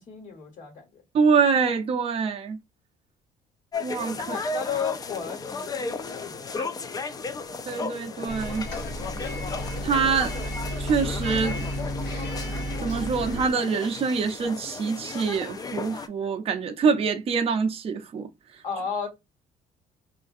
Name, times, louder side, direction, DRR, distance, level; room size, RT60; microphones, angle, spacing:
voice 1, 0.0-1.0 4.1-6.7 18.6-19.1, left 7 dB, 50° left, 1.3 m, -34 dB
voice 2, 1.1-2.6 3.8-4.4 6.6-6.7 7.7-8.7 9.8-10.3 10.8-11.6 12.8-18.3, right 5 dB, 35° right, 0.5 m, -25 dB
sound 1, 3.7-16.1, left 4 dB, 20° left, 0.3 m, -35 dB
Bus, 8.3-13.5, equal, 75° left, 1.3 m, -32 dB
3.6 x 2.4 x 2.5 m
cardioid pair, 110°, 17 cm